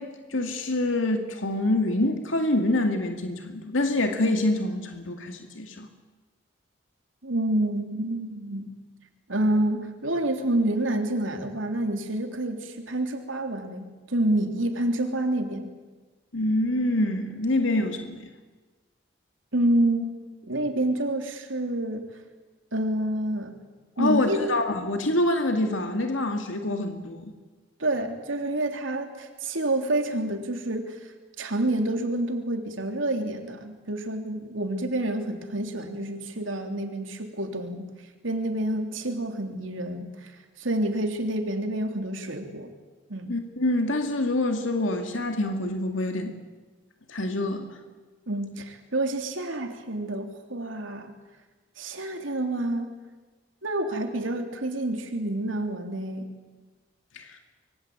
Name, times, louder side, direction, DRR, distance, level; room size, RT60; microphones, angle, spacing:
voice 1, 0.0-5.9 16.3-18.3 24.0-27.3 43.3-46.3 47.1-47.8 57.1-57.4, left 1 dB, 85° left, 5 dB, 2.2 m, -26 dB
voice 2, 7.2-8.7 9.3-15.7 19.5-20.1 20.4-22.1 22.7-23.6 24.0-24.5 27.8-37.9 38.2-40.3 40.6-42.7 43.1-43.3 48.3-51.1 51.8-53.0 53.6-56.3, right 1 dB, 85° right, 5 dB, 3.3 m, -28 dB
25.5 x 23.0 x 8.8 m, 1.3 s
head